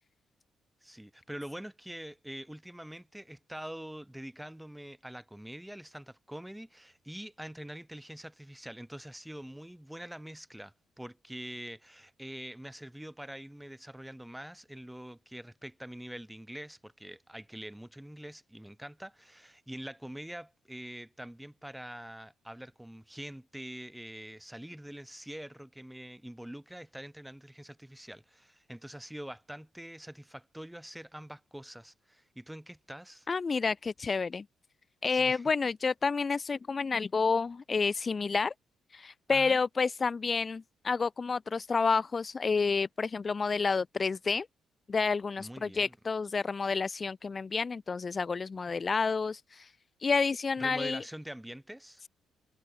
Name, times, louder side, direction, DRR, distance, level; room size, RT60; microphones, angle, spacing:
voice 1, 0.8-33.3 35.1-35.4 39.3-39.6 45.4-46.0 50.6-52.0, right 1 dB, 5° right, 3.0 m, -45 dB
voice 2, 33.3-34.4 35.0-38.5 38.9-44.5 44.9-49.7 50.0-51.0, left 4 dB, 35° left, 0.7 m, -29 dB
cardioid pair, 90°, 0 cm